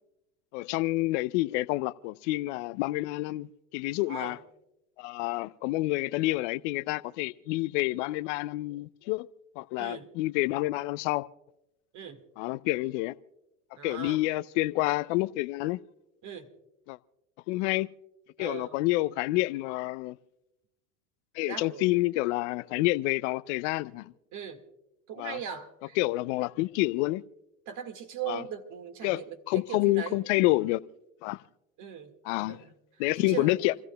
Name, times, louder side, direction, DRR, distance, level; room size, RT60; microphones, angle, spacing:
voice 1, 0.5-3.5 3.7-4.4 5.0-9.3 9.6-11.3 12.4-13.2 13.8-15.8 16.9-17.0 17.5-17.9 18.4-20.2 21.3-24.1 25.2-25.4 26.0-27.2 28.3-28.4 29.0-30.8 31.2-31.4 32.2-32.6 33.0-33.7, left 19 dB, 60° left, 0.5 m, -28 dB
voice 2, 4.1-4.4 9.8-10.1 11.9-12.2 13.8-14.2 16.2-16.5 18.4-18.8 21.5-21.9 24.3-24.6 25.1-26.0 27.7-30.2 31.8-32.2 32.5-32.8 33.2-33.8, right 8 dB, 45° right, 1.9 m, -39 dB
29.0 x 15.0 x 2.3 m
hypercardioid pair, 95°, 41 cm